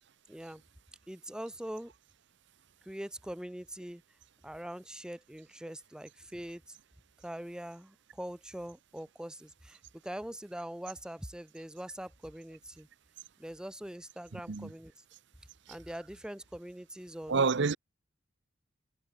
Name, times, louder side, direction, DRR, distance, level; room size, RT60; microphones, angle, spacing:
voice 1, 0.3-0.6 1.1-1.9 2.9-4.0 4.4-6.8 7.2-12.9 13.4-14.9 15.7-17.4, right 1 dB, 5° right, 0.6 m, -43 dB
voice 2, 14.3-14.7 17.3-17.8, right 4 dB, 65° right, 0.8 m, -28 dB
head